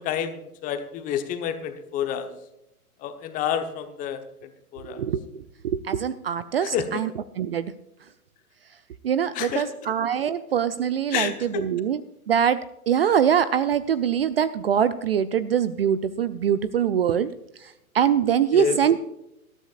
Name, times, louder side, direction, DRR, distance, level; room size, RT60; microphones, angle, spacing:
voice 1, 0.0-2.3 3.0-4.2 4.7-5.0 6.6-7.0 9.3-9.7 11.1-11.6 18.5-18.8, left 8 dB, 20° left, 8 dB, 1.0 m, -29 dB
voice 2, 5.6-7.1 7.4-7.7 9.0-11.3 11.6-12.0 12.3-12.6 12.9-17.3 17.9-19.0, right 8 dB, 40° right, 15 dB, 0.5 m, -23 dB
20.0 x 12.5 x 2.5 m, 0.86 s
figure-of-eight pair, 120°, 45 cm